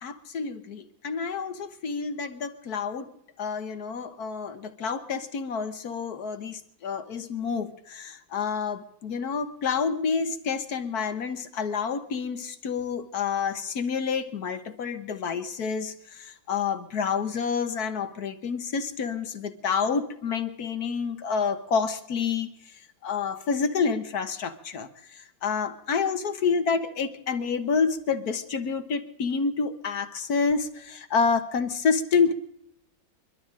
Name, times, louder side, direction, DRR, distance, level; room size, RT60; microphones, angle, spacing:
voice 1, 0.0-3.1 3.4-32.3, left 5 dB, 55° left, 10 dB, 1.5 m, -28 dB
29.0 x 12.0 x 3.8 m, 0.76 s
omnidirectional pair, 2.1 m